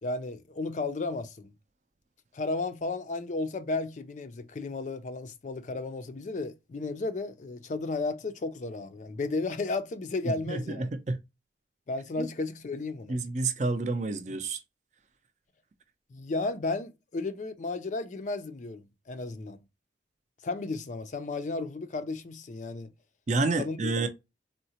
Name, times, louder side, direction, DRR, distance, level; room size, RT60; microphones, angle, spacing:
voice 1, 0.0-1.5 2.3-10.9 11.9-13.2 16.1-19.6 20.4-22.9 23.6-23.9, left 3 dB, 40° left, 0.4 m, -33 dB
voice 2, 10.3-11.2 12.2-12.3 13.1-14.6 23.3-24.1, right 3 dB, 40° right, 0.5 m, -29 dB
3.7 x 2.0 x 2.7 m
head